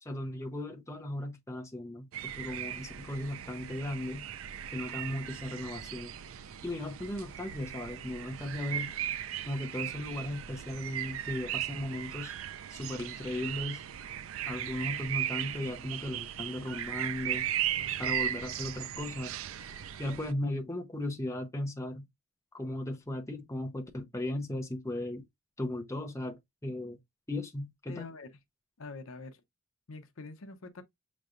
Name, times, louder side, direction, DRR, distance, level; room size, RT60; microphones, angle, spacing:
voice 1, 0.0-2.1 2.3-4.3 4.7-6.1 6.6-8.9 9.5-12.3 12.7-13.8 14.5-17.5 18.0-19.3 20.0-22.1 22.5-25.2 25.6-27.0 27.3-28.1, left 1 dB, 15° left, 0.7 m, -36 dB
sound 1, 2.1-20.3, right 11 dB, 70° right, 0.4 m, -37 dB
voice 2, 27.9-28.3 28.8-29.4 29.9-30.8, left 3 dB, 70° left, 0.7 m, -45 dB
6.6 x 3.2 x 2.5 m
head